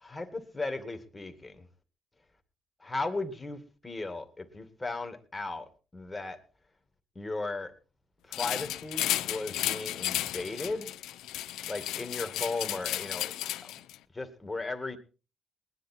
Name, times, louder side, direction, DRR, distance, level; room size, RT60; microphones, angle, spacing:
voice 1, 0.0-1.7 2.8-5.7 5.9-6.4 7.2-7.7 8.3-10.9 11.7-13.3 13.6-13.7 14.1-15.0, left 3 dB, 15° left, 7 dB, 2.3 m, -36 dB
sound 1, 8.3-14.0, left 14 dB, 90° left, 0.7 m, -33 dB
19.5 x 10.5 x 4.5 m, 0.35 s
cardioid pair, 90°, 0 cm